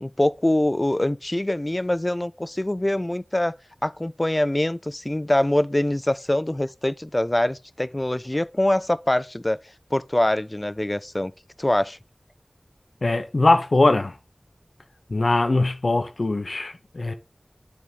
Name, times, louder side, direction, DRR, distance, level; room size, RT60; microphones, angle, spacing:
voice 1, 0.0-3.5 3.8-9.6 9.9-11.3 11.6-12.0, left 1 dB, 35° left, 0.4 m, -24 dB
voice 2, 13.0-14.1 15.1-17.1, left 2 dB, 85° left, 0.7 m, -21 dB
9.8 x 3.5 x 4.0 m
wide cardioid pair, 40°, 0 cm